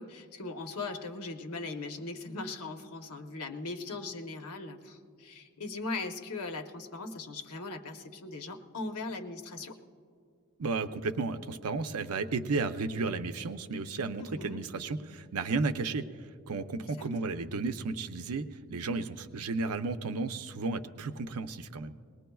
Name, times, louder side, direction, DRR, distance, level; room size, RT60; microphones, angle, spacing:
voice 1, 0.0-9.7 14.2-14.6 17.0-17.1, left 3 dB, 80° left, 6 dB, 0.9 m, -39 dB
voice 2, 10.6-16.0 16.5-21.9, right 3 dB, 80° right, 8 dB, 0.6 m, -33 dB
21.5 x 19.0 x 2.3 m, 2.3 s
head